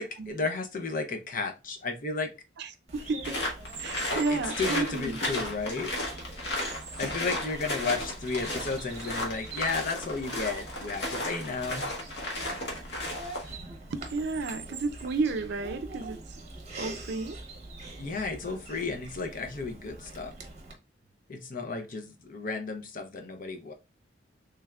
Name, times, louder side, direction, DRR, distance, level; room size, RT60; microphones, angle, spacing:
voice 1, 0.0-2.3 4.1-5.9 7.0-11.9 18.0-20.3 21.3-23.7, left 4 dB, 45° left, 0.6 m, -33 dB
voice 2, 2.6-3.4 3.8-5.2 13.9-16.4 16.8-17.4, right 3 dB, 60° right, 0.4 m, -32 dB
Bird vocalization bird call bird song, 2.9-20.7, right 3 dB, 35° right, 0.8 m, -44 dB
sound 1, 3.2-13.6, left 1 dB, 60° left, 1.1 m, -34 dB
3.4 x 3.2 x 2.2 m
head